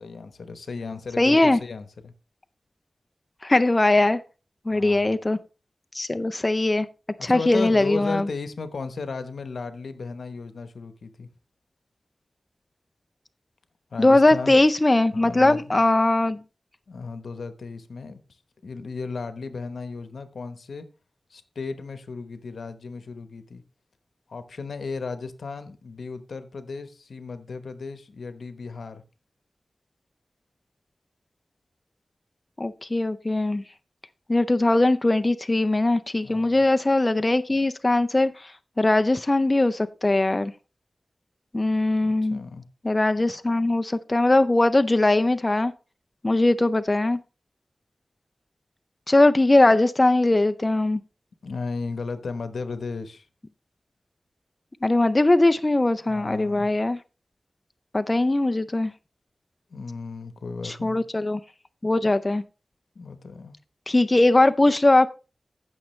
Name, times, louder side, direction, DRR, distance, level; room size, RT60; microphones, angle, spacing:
voice 1, 0.0-2.1 4.7-5.2 7.2-11.3 13.9-14.6 15.1-15.8 16.9-18.2 18.6-20.9 21.3-23.6 24.3-29.0 36.2-36.6 42.0-42.6 51.4-53.3 56.1-56.7 59.7-61.0 62.9-63.6, left 4 dB, 85° left, 1.0 m, -35 dB
voice 2, 1.2-1.6 3.4-4.2 4.7-5.4 5.9-6.9 7.2-8.3 14.0-16.4 32.6-33.6 34.3-38.5 38.8-40.5 41.5-42.4 42.8-45.7 46.2-47.2 49.1-51.0 54.8-57.0 57.9-58.9 60.6-61.4 61.8-62.4 63.9-65.1, left 2 dB, 30° left, 0.5 m, -20 dB
15.0 x 6.2 x 3.2 m
wide cardioid pair, 70°, 0 cm